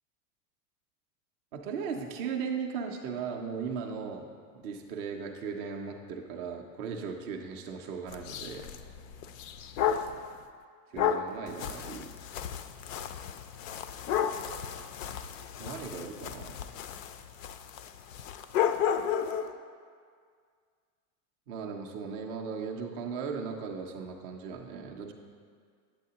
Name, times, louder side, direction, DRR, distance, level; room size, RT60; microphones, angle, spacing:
voice 1, 1.5-4.3 4.5-8.7 10.9-12.1 15.6-16.6 21.5-25.1, right 6 dB, 25° right, 1 dB, 0.3 m, -37 dB
sound 1, 8.1-10.2 11.0-19.5, left 8 dB, 55° left, 0.5 m, -33 dB
8.3 x 8.1 x 2.8 m, 2.1 s
supercardioid pair, 125°, 48 cm